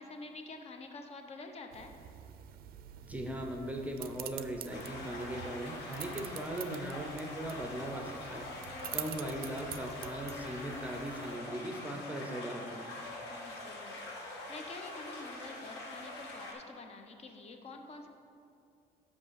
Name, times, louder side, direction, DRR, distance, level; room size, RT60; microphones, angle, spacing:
voice 1, 0.0-1.9 8.6-9.1 13.3-18.1, left 3 dB, 40° left, 5 dB, 0.8 m, -48 dB
sound 1, 1.7-11.4, right 11 dB, 60° right, 0.4 m, -47 dB
voice 2, 3.0-8.5 8.9-12.8, right 1 dB, 10° right, 2 dB, 0.7 m, -39 dB
sound 2, 4.7-16.5, left 2 dB, 80° left, 1.2 m, -44 dB
5.8 x 5.3 x 6.4 m, 2.6 s
cardioid pair, 110°, 17 cm